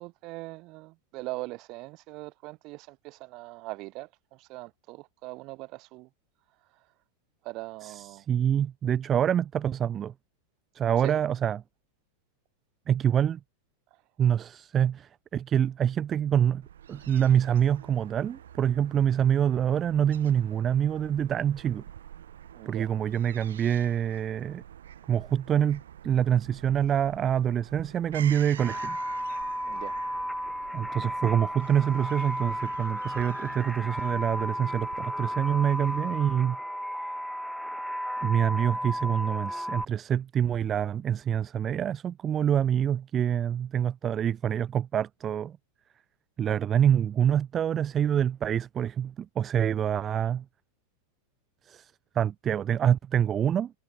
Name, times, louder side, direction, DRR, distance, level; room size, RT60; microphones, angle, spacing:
voice 1, 0.0-6.1 7.4-8.2 11.0-11.2 22.5-22.9 29.6-30.0, right 22 dB, 40° right, 4.0 m, -41 dB
voice 2, 7.8-10.1 10.7-11.6 12.9-13.4 14.2-16.6 16.9-21.8 22.7-24.6 25.1-29.0 30.7-36.6 38.2-45.6 46.4-50.4 51.7-53.7, right 9 dB, 25° right, 2.0 m, -26 dB
Fowl / Gull seagull, 16.6-36.5, right 10 dB, 65° right, 4.0 m, -47 dB
sound 1, 28.6-39.8, equal, ahead, 0.4 m, -33 dB
figure-of-eight pair, 90°, 0 cm